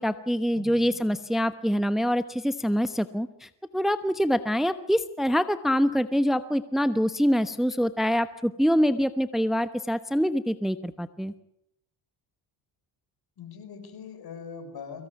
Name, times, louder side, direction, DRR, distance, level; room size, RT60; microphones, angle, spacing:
voice 1, 0.0-11.3, equal, ahead, 12 dB, 1.1 m, -25 dB
voice 2, 0.5-1.0 13.4-15.1, left 6 dB, 55° left, 9 dB, 5.1 m, -42 dB
23.5 x 17.0 x 9.4 m, 0.77 s
cardioid pair, 85°, 44 cm